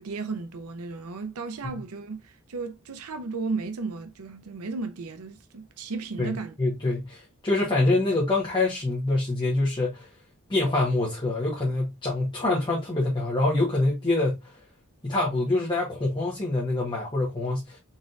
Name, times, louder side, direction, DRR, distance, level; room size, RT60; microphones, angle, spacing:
voice 1, 0.0-6.6, right 4 dB, 75° right, 0.6 m, -34 dB
voice 2, 6.2-10.1 10.5-14.5 15.0-17.8, left 2 dB, 20° left, 1.2 m, -25 dB
4.1 x 3.6 x 2.5 m
head